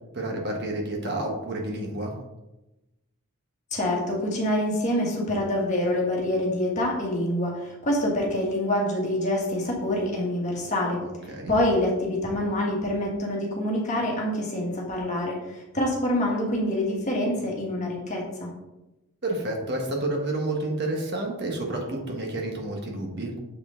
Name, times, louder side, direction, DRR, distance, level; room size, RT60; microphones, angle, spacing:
voice 1, 0.1-2.1 11.0-11.5 19.2-23.4, right 2 dB, 50° right, 1 dB, 1.3 m, -30 dB
voice 2, 3.7-11.0 11.5-18.5, left 1 dB, 35° left, -2 dB, 1.6 m, -26 dB
7.1 x 4.8 x 3.8 m, 0.98 s
head